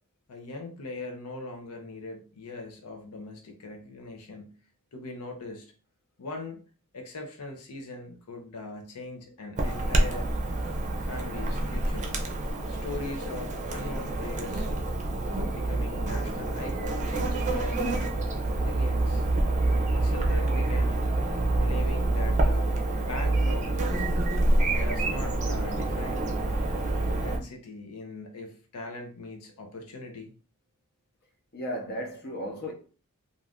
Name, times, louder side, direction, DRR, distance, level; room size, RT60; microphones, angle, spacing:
voice 1, 0.3-4.5 4.9-5.7 6.2-6.6 6.9-10.3 11.0-12.1 12.7-14.7 15.2-18.1 18.6-19.3 20.0-21.0 21.5-24.1 24.7-26.4 27.1-30.3, left 2 dB, 85° left, 0.6 m, -40 dB
Chirp tweet / Buzz, 9.6-27.4, right 2 dB, 35° right, 0.5 m, -27 dB
voice 2, 31.5-32.7, equal, 45° left, 0.7 m, -34 dB
2.5 x 2.4 x 3.4 m
head